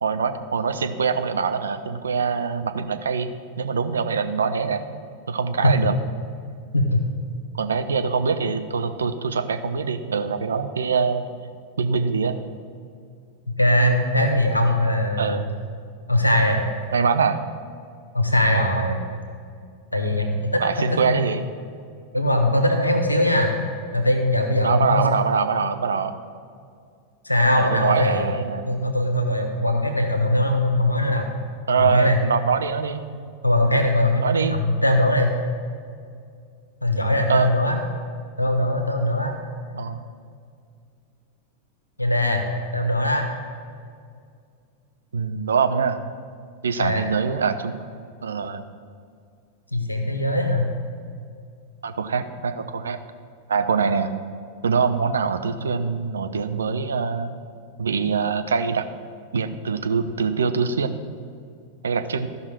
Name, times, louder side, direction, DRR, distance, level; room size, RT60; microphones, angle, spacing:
voice 1, 0.0-4.8 5.3-6.0 7.5-11.2 11.8-12.4 15.2-15.5 16.9-17.4 20.6-21.4 24.6-26.1 27.5-28.7 31.7-33.0 34.2-34.6 37.3-37.5 39.7-40.0 45.1-46.0 46.6-47.8 48.2-48.6 51.8-53.0 53.5-54.1 54.6-57.3 57.8-58.8 59.3-61.0 61.8-62.3, right 5 dB, 70° right, 9 dB, 0.6 m, -23 dB
voice 2, 6.7-7.0 13.6-15.4 16.1-16.6 18.1-19.0 19.9-20.6 21.1-21.2 22.1-23.5 23.9-25.0 27.2-28.3 28.7-31.3 31.8-32.2 33.4-35.3 36.8-37.8 38.4-39.3 42.0-42.4 42.7-43.3 46.8-47.0 49.7-50.7, left 1 dB, 85° left, 3 dB, 1.1 m, -21 dB
13.5 x 5.7 x 4.6 m, 2.3 s
figure-of-eight pair, 90°, 0 cm